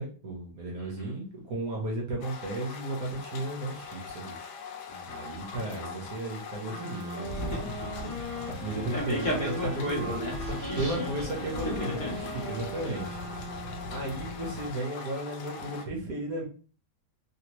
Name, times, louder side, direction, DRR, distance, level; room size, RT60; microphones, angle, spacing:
voice 1, 0.0-4.3 5.1-7.6 8.6-9.3 9.8-10.2 10.7-13.2 13.9-16.5, right 2 dB, 55° right, -2 dB, 1.3 m, -34 dB
voice 2, 0.8-1.1 4.9-5.2 7.2-8.1 8.7-11.2 11.7-12.1 12.7-12.9, left 1 dB, 50° left, -3 dB, 1.1 m, -35 dB
sound 1, 2.2-15.9, left 5 dB, 70° left, 1.1 m, -42 dB
sound 2, 6.6-14.3, right 1 dB, 70° right, 0.5 m, -40 dB
sound 3, 7.4-14.7, left 2 dB, 85° left, 1.4 m, -43 dB
3.3 x 2.8 x 2.9 m, 0.39 s
omnidirectional pair, 2.0 m